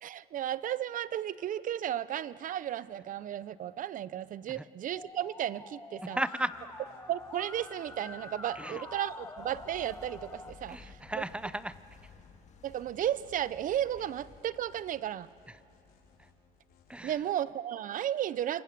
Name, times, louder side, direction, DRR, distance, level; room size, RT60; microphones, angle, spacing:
voice 1, 0.0-6.2 7.1-10.8 12.6-15.3 17.0-18.6, right 11 dB, 50° right, 18 dB, 0.6 m, -34 dB
Musical instrument, 4.9-10.5, left 2 dB, 15° left, 1.2 m, -46 dB
voice 2, 6.0-6.5 8.5-8.8 10.7-11.8 12.0-12.1 15.5-15.6 16.2-16.3 16.9-17.2, right 1 dB, 5° right, 15 dB, 0.6 m, -36 dB
sound 1, 6.4-17.0, left 5 dB, 70° left, 4.6 m, -63 dB
sound 2, 9.4-14.4, left 5 dB, 45° left, 1.8 m, -55 dB
27.5 x 22.5 x 6.8 m, 2.5 s
cardioid pair, 110°, 17 cm